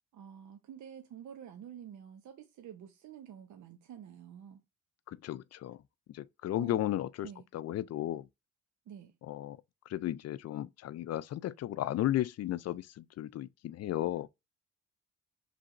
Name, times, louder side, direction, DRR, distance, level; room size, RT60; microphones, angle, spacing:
voice 1, 0.1-4.6 6.6-6.8 7.2-7.5 8.9-9.1, right 9 dB, 70° right, 0.8 m, -49 dB
voice 2, 5.1-5.8 6.1-7.3 7.5-8.3 9.3-9.6 9.9-14.3, left 13 dB, 55° left, 0.5 m, -34 dB
4.8 x 3.4 x 2.6 m
cardioid pair, 90°, 30 cm